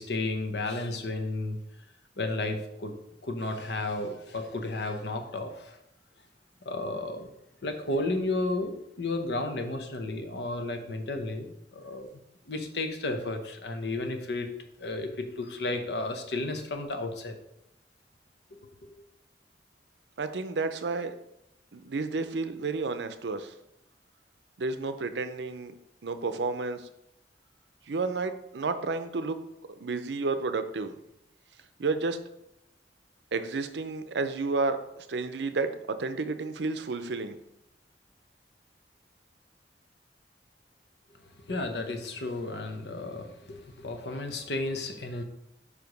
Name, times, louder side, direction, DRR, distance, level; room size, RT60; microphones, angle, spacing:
voice 1, 0.0-1.6 2.2-2.9 3.2-5.8 6.6-7.3 7.6-12.1 12.5-14.5 14.8-17.4 41.5-45.2, left 2 dB, 70° left, 6 dB, 0.9 m, -33 dB
voice 2, 20.2-21.1 21.7-23.5 24.6-25.7 26.0-26.9 27.9-29.4 29.7-30.9 31.8-32.2 33.3-37.4, right 3 dB, 75° right, 10 dB, 0.6 m, -31 dB
5.1 x 4.9 x 5.2 m, 0.82 s
head